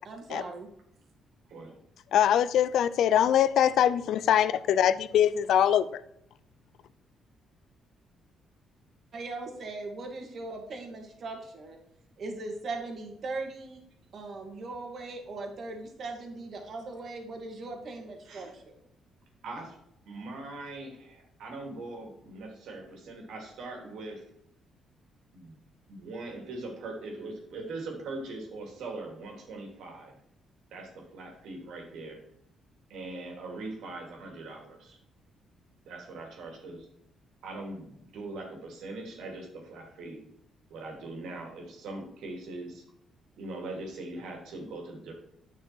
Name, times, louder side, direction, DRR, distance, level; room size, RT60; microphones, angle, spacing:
voice 1, 0.0-0.7 9.1-11.8 12.2-13.8 14.1-18.7, right 3 dB, 55° right, 2.4 m, -39 dB
voice 2, 2.1-6.0, left 10 dB, 75° left, 0.5 m, -23 dB
voice 3, 19.4-19.8 20.0-24.2 25.3-25.6 25.9-30.1 30.7-32.2 32.9-35.0 35.9-36.9 37.4-40.2 40.7-42.8 43.3-45.1, right 2 dB, 80° right, 3.1 m, -41 dB
9.4 x 6.2 x 4.6 m
cardioid pair, 90°, 0 cm